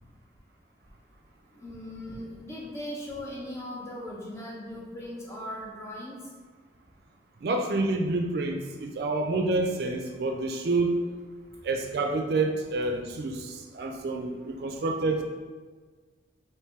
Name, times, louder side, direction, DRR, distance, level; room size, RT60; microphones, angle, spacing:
voice 1, 1.5-6.2, left 1 dB, 15° left, -5 dB, 0.9 m, -39 dB
voice 2, 7.4-11.0 11.6-15.2, right 2 dB, 60° right, 3 dB, 0.4 m, -28 dB
3.3 x 3.0 x 4.5 m, 1.4 s
head